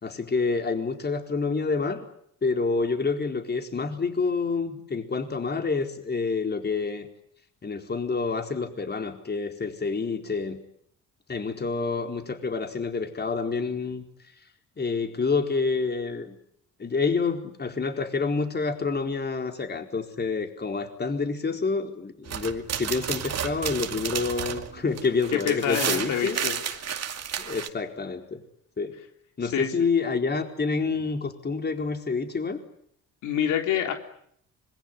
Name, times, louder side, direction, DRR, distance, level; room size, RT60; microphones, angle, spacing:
voice 1, 0.0-2.0 2.4-7.1 7.6-10.6 11.3-14.0 14.8-16.4 16.8-26.4 27.4-28.4 28.8-28.9 29.4-32.6, left 4 dB, 35° left, 5 dB, 4.4 m, -28 dB
sound 1, 22.3-27.7, right 8 dB, 55° right, 2.3 m, -32 dB
voice 2, 25.3-26.6 27.4-27.6 29.5-29.7 33.2-33.9, left 10 dB, 85° left, 5 dB, 3.4 m, -27 dB
25.5 x 22.0 x 9.8 m, 0.69 s
cardioid pair, 90°, 30 cm